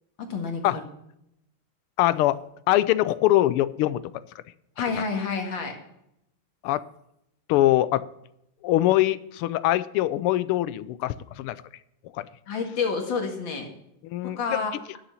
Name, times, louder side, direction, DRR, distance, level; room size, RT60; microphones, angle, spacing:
voice 1, 0.2-0.8 4.8-5.7 12.5-13.7 14.4-14.7, left 5 dB, 60° left, 3 dB, 2.6 m, -29 dB
voice 2, 2.0-2.4 2.7-4.0 5.0-5.1 6.6-6.8 7.5-8.0 8.6-11.6 12.2-12.3 14.0-14.4, left 15 dB, 85° left, 17 dB, 1.5 m, -22 dB
11.0 x 7.0 x 5.5 m, 0.80 s
omnidirectional pair, 2.4 m